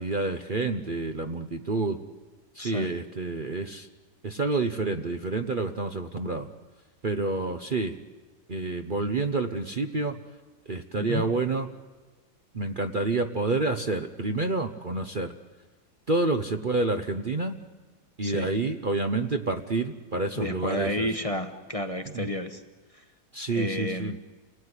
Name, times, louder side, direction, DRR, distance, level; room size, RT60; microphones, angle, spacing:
voice 1, 0.0-2.0 2.5-3.9 4.2-6.5 7.0-8.0 8.5-10.2 10.7-11.7 12.5-15.3 16.1-17.6 18.2-21.1 22.1-22.2 23.3-24.1, right 3 dB, 35° right, 6 dB, 1.0 m, -28 dB
voice 2, 2.6-2.9 11.0-11.2 18.2-18.5 20.4-22.6 22.9-23.1 23.5-24.2, left 1 dB, 25° left, 7 dB, 1.2 m, -31 dB
29.0 x 19.0 x 9.9 m, 1.3 s
omnidirectional pair, 1.7 m